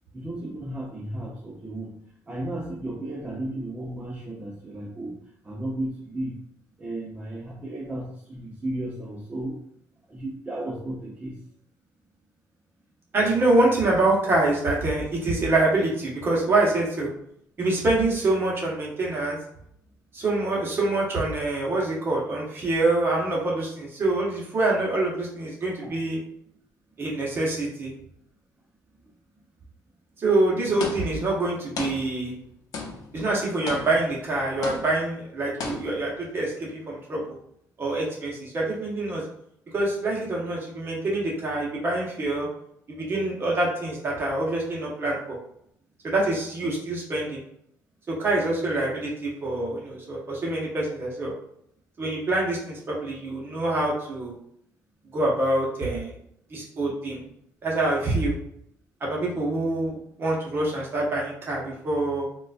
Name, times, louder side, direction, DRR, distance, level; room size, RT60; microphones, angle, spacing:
voice 1, 0.1-1.9 2.3-5.2 5.4-6.4 6.8-9.6 10.1-11.4 25.8-26.0, right 1 dB, 20° right, -3 dB, 0.6 m, -34 dB
voice 2, 13.1-17.1 17.6-19.4 20.1-26.2 27.0-27.9 30.2-32.3 33.1-37.3 37.8-39.2 39.7-42.5 42.9-45.4 46.0-47.4 48.1-51.3 52.0-54.4 55.1-56.1 56.5-57.2 57.6-58.3 59.0-62.3, right 2 dB, 35° right, -3 dB, 0.9 m, -25 dB
sound 1, 30.8-31.4 31.8-32.5 32.7-33.2 33.7-34.2 34.6-35.2 35.6-36.2, left 4 dB, 60° left, 0.7 m, -35 dB
3.8 x 2.3 x 2.4 m, 0.71 s
cardioid pair, 125°, 7 cm